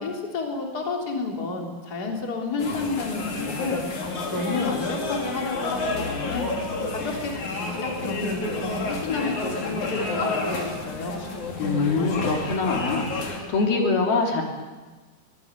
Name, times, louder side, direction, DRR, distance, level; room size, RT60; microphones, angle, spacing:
voice 1, 0.0-3.8 4.3-6.5 6.9-11.1, left 3 dB, 25° left, 1 dB, 3.5 m, -30 dB
sound 1, 2.6-13.4, left 3 dB, 55° left, 4.2 m, -30 dB
voice 2, 11.6-14.4, left 4 dB, 75° left, 2 dB, 4.9 m, -24 dB
23.0 x 18.5 x 8.3 m, 1.2 s
omnidirectional pair, 4.3 m